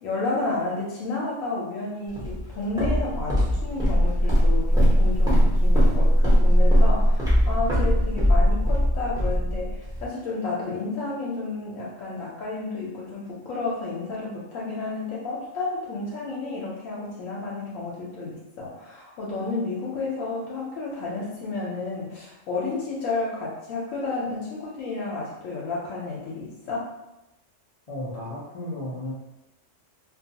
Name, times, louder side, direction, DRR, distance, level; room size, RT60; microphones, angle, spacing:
voice 1, 0.0-26.9, left 3 dB, 80° left, -5 dB, 1.0 m, -31 dB
Walk footsteps, 2.2-10.0, equal, 5° right, 0.6 m, -20 dB
voice 2, 27.9-29.1, left 1 dB, 55° left, -7 dB, 0.4 m, -33 dB
2.4 x 2.3 x 2.7 m, 0.97 s
omnidirectional pair, 1.4 m